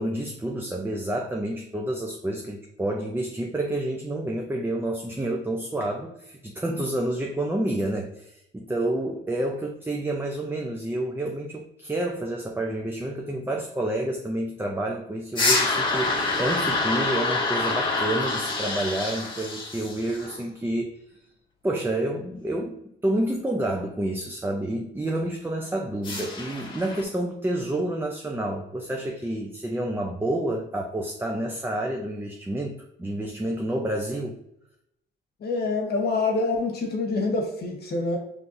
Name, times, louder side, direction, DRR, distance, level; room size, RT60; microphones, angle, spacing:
voice 1, 0.0-20.9 21.6-34.4, right 1 dB, 10° right, 1 dB, 0.6 m, -29 dB
sound 1, 15.3-20.4 26.0-27.0, left 3 dB, 25° left, 1.5 m, -26 dB
voice 2, 35.4-38.2, left 3 dB, 55° left, 1 dB, 1.3 m, -26 dB
5.3 x 3.4 x 2.6 m, 0.79 s
cardioid pair, 90°, 20 cm